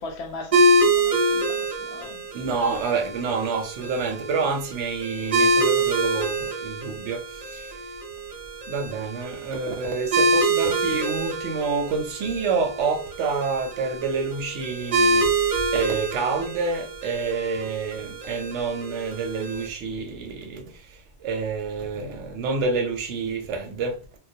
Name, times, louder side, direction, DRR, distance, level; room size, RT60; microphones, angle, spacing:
voice 1, 0.0-2.2, left 3 dB, 70° left, 0.8 m, -39 dB
sound 1, 0.5-19.7, right 2 dB, 65° right, 0.3 m, -26 dB
voice 2, 2.3-7.7 8.7-15.3 15.7-20.7 21.2-24.0, right 4 dB, 85° right, 0.9 m, -28 dB
2.3 x 2.1 x 2.6 m
omnidirectional pair, 1.2 m